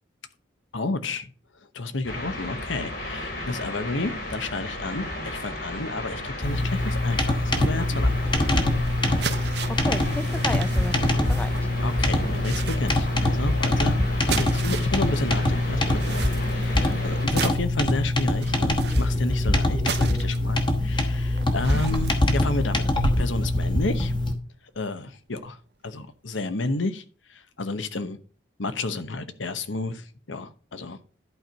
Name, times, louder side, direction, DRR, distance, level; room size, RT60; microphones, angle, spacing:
voice 1, 0.7-1.3 1.7-8.6 11.8-14.0 14.3-24.1 24.7-25.6 25.8-27.0 27.3-28.2 28.6-31.0, left 2 dB, 90° left, 11 dB, 1.0 m, -31 dB
sound 1, 2.0-17.3, left 1 dB, 70° left, 5.5 m, -35 dB
sound 2, 6.4-24.3, left 1 dB, 25° left, 1.1 m, -24 dB
log wood branch drop in snow various and pick up, 7.5-15.1 15.4-24.4 24.8-24.9 25.3-25.4, right 5 dB, 60° right, 0.8 m, -37 dB
voice 2, 9.7-11.5 16.6-16.8 21.7-21.8, left 1 dB, 5° left, 12 dB, 0.5 m, -34 dB
11.5 x 4.6 x 5.1 m, 0.39 s
head